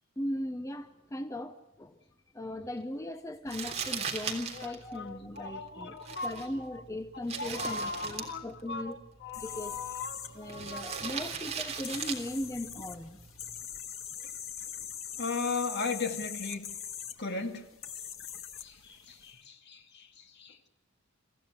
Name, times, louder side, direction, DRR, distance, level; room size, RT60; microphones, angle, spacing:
voice 1, 0.2-2.0 2.3-9.0 9.4-9.7 10.3-13.2, left 1 dB, 15° left, 0.8 m, -38 dB
Crumpling crinkling, 3.5-13.6, right 6 dB, 30° right, 3.4 m, -40 dB
voice 2, 4.5-6.5 7.1-11.2 15.2-16.7 17.2-17.7 18.6-20.7, left 4 dB, 55° left, 2.4 m, -37 dB
sound 1, 9.3-19.3, left 9 dB, 80° left, 1.9 m, -43 dB
25.5 x 15.0 x 9.6 m
head